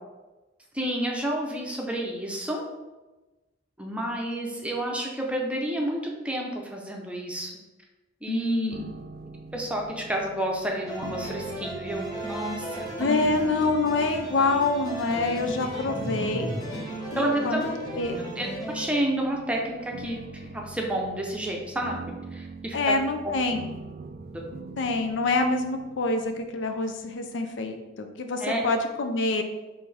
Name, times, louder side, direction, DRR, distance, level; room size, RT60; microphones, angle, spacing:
voice 1, 0.7-2.6 3.8-7.5 8.2-8.7 9.5-13.3 17.2-17.7 18.4-20.2 20.5-22.0 22.3-22.9 23.2-23.3 24.3-24.5 28.4-28.6, right 1 dB, 5° right, 0 dB, 0.6 m, -30 dB
voice 2, 8.3-8.9 13.0-18.2 22.7-23.7 24.8-29.4, left 3 dB, 75° left, 5 dB, 0.5 m, -26 dB
sound 1, 8.7-27.7, right 3 dB, 50° right, 0.3 m, -44 dB
sound 2, 10.9-18.9, right 1 dB, 20° left, 0.9 m, -36 dB
5.7 x 2.6 x 3.3 m, 1.1 s
head